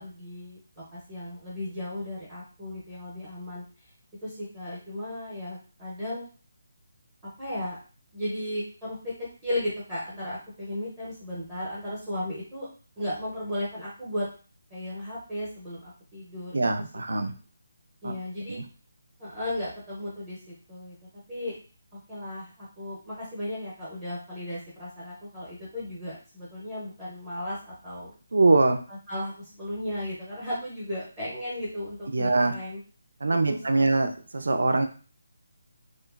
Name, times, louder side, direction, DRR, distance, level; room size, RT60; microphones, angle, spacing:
voice 1, 0.0-3.6 4.2-6.3 7.4-7.8 8.1-9.1 9.4-12.7 13.0-14.3 14.7-16.7 17.1-17.2 18.0-18.6 19.2-20.9 21.3-21.6 22.1-28.1 28.9-32.8 33.3-33.9, left 1 dB, 10° right, -7 dB, 0.6 m, -35 dB
voice 2, 16.5-17.3 18.0-18.1 18.6-18.7 28.3-28.8 32.1-32.5 33.2-34.8, right 3 dB, 70° right, 7 dB, 0.5 m, -23 dB
3.0 x 2.4 x 2.3 m, 0.37 s
hypercardioid pair, 180°, 0 cm